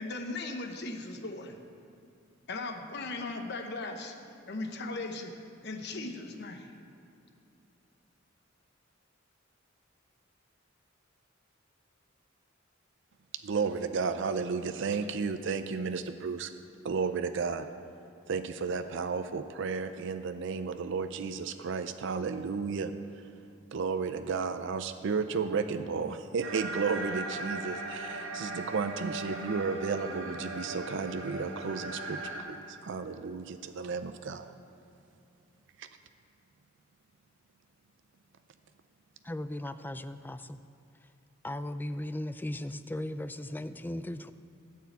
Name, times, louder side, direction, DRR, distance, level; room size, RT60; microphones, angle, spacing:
voice 1, 0.0-1.6 2.5-4.1 4.5-5.3 5.6-6.7, left 2 dB, 55° left, 5 dB, 1.0 m, -38 dB
voice 2, 13.4-16.5 16.8-17.7 18.3-22.9 23.7-34.5 35.8-35.9, right 5 dB, 65° right, 9 dB, 0.5 m, -33 dB
sound 1, 26.4-32.4, right 2 dB, 80° right, 1.6 m, -38 dB
voice 3, 39.2-40.6 41.4-44.3, left 1 dB, 10° left, 11 dB, 0.3 m, -37 dB
14.0 x 4.7 x 8.3 m, 2.7 s
head